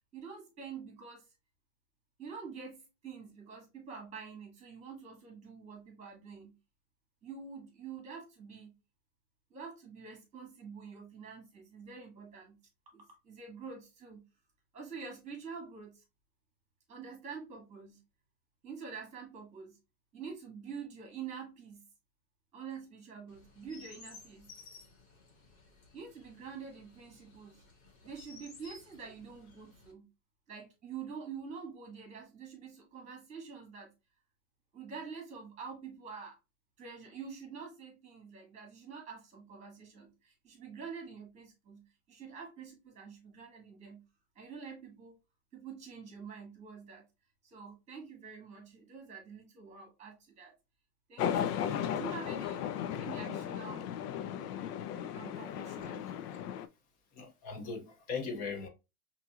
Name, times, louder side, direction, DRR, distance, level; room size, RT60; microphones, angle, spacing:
voice 1, 0.1-1.3 2.2-6.5 7.2-8.7 9.5-12.6 12.9-14.2 14.7-16.0 16.9-18.0 18.6-19.8 20.1-21.8 22.5-24.5 25.9-27.6 28.0-30.1 30.5-33.9 34.7-36.3 36.8-44.0 44.4-45.1 45.5-47.0 47.4-50.6 51.1-52.6 53.0-53.9 55.1-56.1, right 6 dB, 15° right, 1.7 m, -47 dB
Chirp tweet, 23.3-29.9, left 4 dB, 50° left, 1.7 m, -56 dB
sound 1, 51.2-56.7, left 9 dB, 90° left, 0.6 m, -36 dB
voice 2, 56.0-56.4 57.1-58.7, left 5 dB, 20° left, 0.4 m, -40 dB
5.5 x 2.7 x 2.4 m
supercardioid pair, 155°, 45 cm